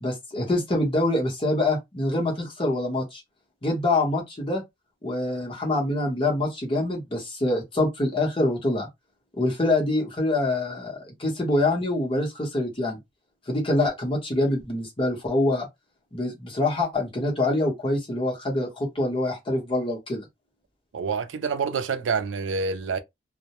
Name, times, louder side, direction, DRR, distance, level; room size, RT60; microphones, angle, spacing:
voice 1, 0.0-3.2 3.6-4.6 5.0-8.9 9.4-13.0 13.5-15.7 16.1-20.2, left 2 dB, 30° left, 0.8 m, -25 dB
voice 2, 20.9-23.0, right 5 dB, 80° right, 0.4 m, -27 dB
2.1 x 2.1 x 2.8 m
head